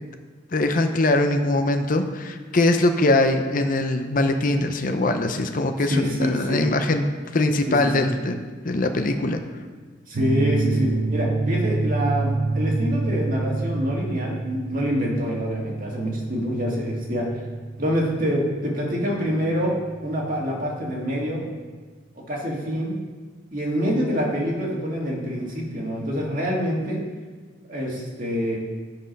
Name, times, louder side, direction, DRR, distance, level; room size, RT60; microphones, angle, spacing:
voice 1, 0.5-7.1 7.3-8.4 8.6-9.4, left 2 dB, 45° left, 6 dB, 0.7 m, -22 dB
voice 2, 5.8-6.6 7.7-8.1 10.1-17.3 17.8-21.4 22.1-22.9 23.5-27.0 27.7-28.6, equal, 45° right, -2 dB, 2.1 m, -26 dB
sound 1, 10.1-21.3, right 3 dB, 80° right, 0.5 m, -28 dB
9.9 x 6.3 x 5.3 m, 1.4 s
head